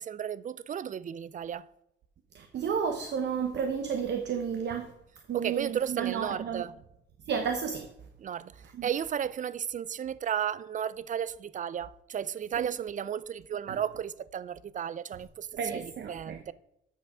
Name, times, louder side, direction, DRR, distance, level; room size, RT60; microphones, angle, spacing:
voice 1, 0.0-1.7 5.3-6.7 8.2-8.5 8.8-16.5, right 9 dB, 40° right, 0.4 m, -34 dB
voice 2, 2.3-4.9 5.3-6.6 7.3-7.9 8.7-8.9 12.6-12.7 13.7-13.8 15.6-16.4, right 7 dB, 60° right, 0.9 m, -32 dB
8.6 x 6.5 x 4.8 m
cardioid pair, 90°, 20 cm